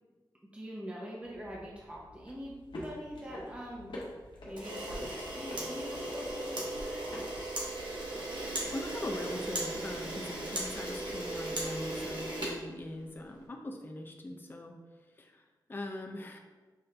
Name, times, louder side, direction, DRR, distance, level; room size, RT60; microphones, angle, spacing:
voice 1, 0.5-2.5 2.8-4.0 4.5-7.1 10.6-10.7 11.9-12.0, equal, 15° right, -4 dB, 0.7 m, -44 dB
sound 1, 1.2-12.1, left 1 dB, 80° left, 1.0 m, -48 dB
Camera, 4.5-13.3, right 1 dB, 75° right, 1.1 m, -37 dB
voice 2, 8.7-14.8 15.2-15.4 15.7-16.4, left 1 dB, 25° left, 2 dB, 0.4 m, -41 dB
5.6 x 2.6 x 3.3 m, 1.3 s
wide cardioid pair, 75°, 8 cm